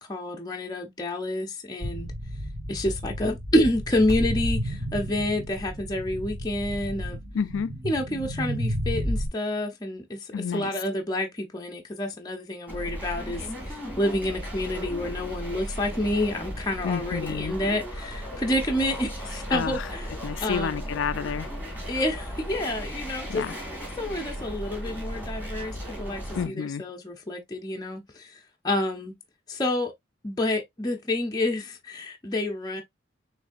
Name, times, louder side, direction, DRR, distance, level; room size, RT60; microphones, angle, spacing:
voice 1, 0.1-2.1 2.7-7.2 7.8-20.1 20.4-20.8 21.9-23.4 24.0-29.2 29.5-29.9 30.2-32.8, left 1 dB, 20° left, 0.6 m, -28 dB
sound 1, 1.8-9.3, equal, 35° right, 1.6 m, -32 dB
voice 2, 7.3-7.8 10.3-10.7 16.8-17.5 19.5-19.8 20.2-21.5 23.3-23.6 26.3-26.8, left 6 dB, 80° left, 0.4 m, -30 dB
sound 2, 12.7-26.5, equal, 10° right, 2.2 m, -36 dB
6.0 x 3.2 x 2.5 m
head